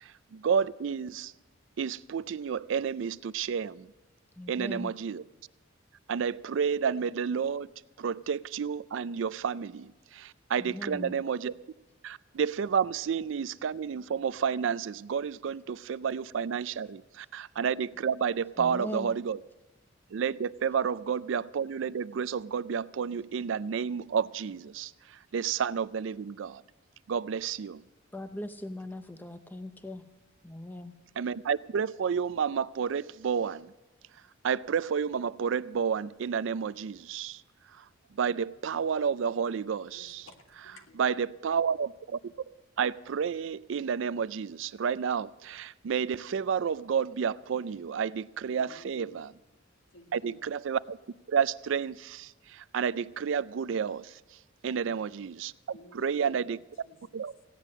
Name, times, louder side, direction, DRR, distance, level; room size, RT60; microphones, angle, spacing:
voice 1, 0.0-1.3 1.8-3.9 4.5-5.2 6.1-7.7 8.0-11.5 12.0-19.4 20.1-26.6 27.1-27.8 31.2-33.7 34.4-37.4 38.2-40.2 41.0-42.2 42.8-49.3 50.1-51.0 51.3-54.2 54.6-55.5 55.9-56.6 57.1-57.3, right 7 dB, 65° right, 0.4 m, -30 dB
voice 2, 4.4-4.9 10.6-11.1 18.5-19.1 28.1-30.0 30.4-30.9, left 1 dB, 10° left, 0.5 m, -40 dB
voice 3, 39.9-41.0 48.5-49.2 49.9-50.4 54.7-54.9 55.7-56.6 56.8-57.2, left 1 dB, 75° left, 1.8 m, -54 dB
16.0 x 10.0 x 6.4 m
head